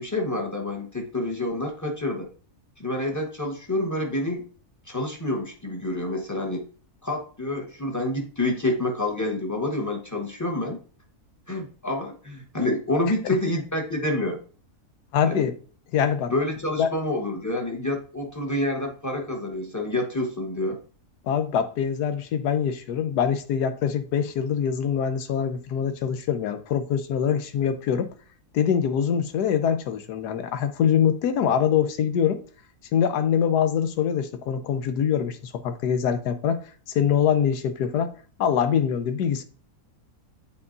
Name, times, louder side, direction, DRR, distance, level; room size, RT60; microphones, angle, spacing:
voice 1, 0.0-2.3 2.8-4.4 4.9-6.7 7.0-10.8 11.5-14.4 15.2-15.5 16.3-20.8, left 1 dB, 15° left, 1.0 m, -28 dB
voice 2, 15.1-15.5 15.9-16.3 16.8-16.9 21.3-28.1 28.5-32.4 32.9-36.6 36.9-38.1 38.4-39.4, left 8 dB, 90° left, 1.3 m, -24 dB
8.5 x 4.5 x 2.6 m
omnidirectional pair, 1.7 m